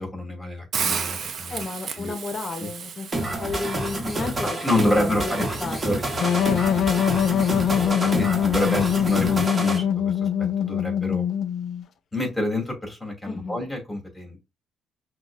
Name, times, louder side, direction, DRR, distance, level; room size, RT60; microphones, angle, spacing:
voice 1, 0.0-1.6 1.9-2.1 2.6-2.7 4.2-4.3 4.6-6.5 8.0-11.2 12.1-14.4, left 1 dB, 15° left, 2.4 m, -28 dB
Hiss, 0.7-6.8, right 6 dB, 55° right, 0.6 m, -34 dB
voice 2, 1.5-3.1 3.4-4.5 4.9-5.3 5.6-6.0 7.7-8.0 13.2-13.6, left 4 dB, 45° left, 0.8 m, -33 dB
sound 1, 3.1-9.8, right 1 dB, 25° right, 1.2 m, -28 dB
sound 2, 6.2-11.8, left 8 dB, 65° left, 0.4 m, -23 dB
6.0 x 2.3 x 2.5 m
cardioid pair, 90°, 0 cm